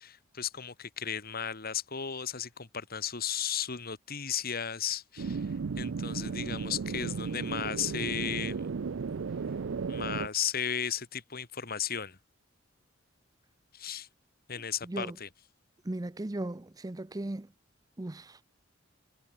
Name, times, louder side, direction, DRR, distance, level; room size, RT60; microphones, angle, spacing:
voice 1, 0.0-5.5 5.8-8.7 9.9-12.2 13.7-14.1 14.5-15.3, left 8 dB, 50° left, 2.0 m, -35 dB
sound 1, 5.2-10.3, right 5 dB, 70° right, 0.5 m, -34 dB
voice 2, 14.8-15.2 15.8-17.5 18.0-18.4, right 1 dB, 20° right, 0.6 m, -37 dB
head